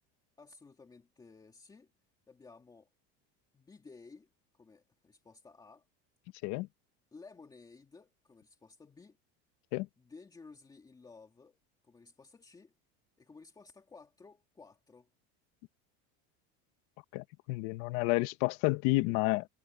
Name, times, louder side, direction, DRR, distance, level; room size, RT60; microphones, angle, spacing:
voice 1, 0.4-1.9 2.3-2.9 3.5-4.3 4.5-5.9 7.1-9.2 10.0-12.7 13.2-15.1, left 4 dB, 10° left, 2.4 m, -55 dB
voice 2, 17.1-19.5, left 21 dB, 60° left, 1.1 m, -30 dB
cardioid pair, 170°, 32 cm